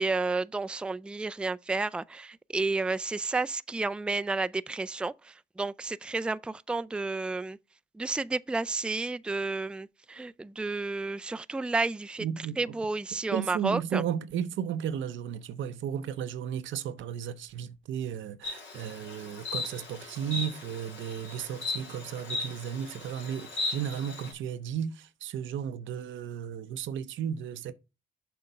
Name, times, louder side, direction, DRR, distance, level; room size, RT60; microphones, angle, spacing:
voice 1, 0.0-5.1 5.6-7.6 8.0-12.2 12.6-14.0, right 3 dB, 5° right, 0.3 m, -31 dB
voice 2, 12.2-12.7 13.3-27.7, right 9 dB, 85° right, 0.7 m, -34 dB
Insect, 18.4-24.3, left 3 dB, 75° left, 2.7 m, -37 dB
6.9 x 3.8 x 5.5 m
supercardioid pair, 60°, 19 cm